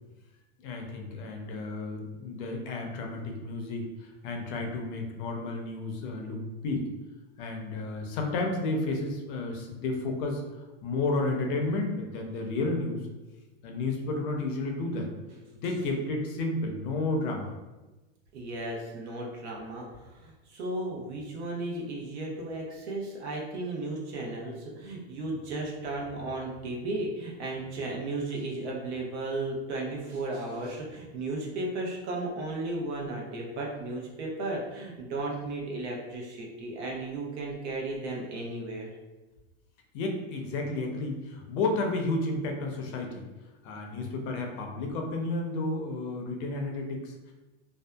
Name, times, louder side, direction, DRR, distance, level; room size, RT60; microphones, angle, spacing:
voice 1, 0.6-6.8 7.4-10.4 10.8-13.1 13.6-15.1 15.5-17.5 39.9-43.3 43.6-47.3, left 2 dB, 50° left, 2 dB, 0.5 m, -32 dB
voice 2, 18.3-38.9, right 2 dB, 90° right, -2 dB, 0.8 m, -35 dB
2.6 x 2.3 x 2.2 m, 1.1 s
supercardioid pair, 145°, 33 cm